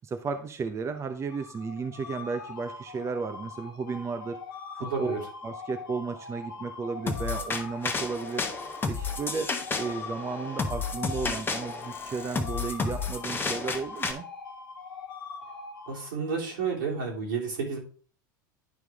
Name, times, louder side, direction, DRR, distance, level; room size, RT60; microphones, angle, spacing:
voice 1, 0.0-4.4 4.7-5.1 5.4-8.4 8.9-9.5 9.7-14.2, right 4 dB, 25° right, 7 dB, 0.8 m, -34 dB
sound 1, 1.2-16.5, left 4 dB, 90° left, 1.4 m, -42 dB
voice 2, 4.8-5.2 15.9-17.8, right 5 dB, 80° right, -2 dB, 3.1 m, -31 dB
sound 2, 7.1-14.1, left 4 dB, 20° left, 1.1 m, -32 dB
10.5 x 4.6 x 3.5 m, 0.41 s
hypercardioid pair, 90°, 11 cm